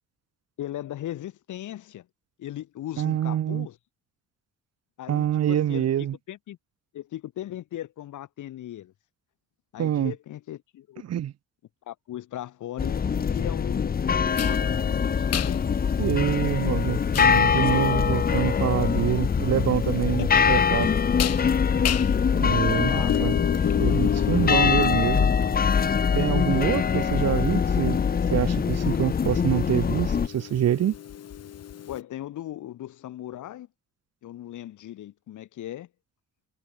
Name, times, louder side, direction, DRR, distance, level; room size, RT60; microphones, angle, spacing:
voice 1, 0.6-2.1 2.4-3.8 5.0-5.9 6.3-6.6 6.9-8.9 9.7-11.0 11.9-15.7 20.2-20.6 22.5-23.2 31.9-33.7 34.2-35.9, left 13 dB, 80° left, 5.8 m, -38 dB
voice 2, 3.0-3.7 5.1-6.1 9.8-10.1 11.1-11.3 16.0-20.9 22.4-23.3 23.8-25.3 26.1-28.0 28.3-30.9, right 11 dB, 55° right, 1.0 m, -26 dB
sound 1, 12.8-30.3, left 6 dB, 30° left, 0.8 m, -23 dB
sound 2, 14.3-32.0, left 10 dB, 55° left, 1.4 m, -34 dB
cardioid pair, 90°, 30 cm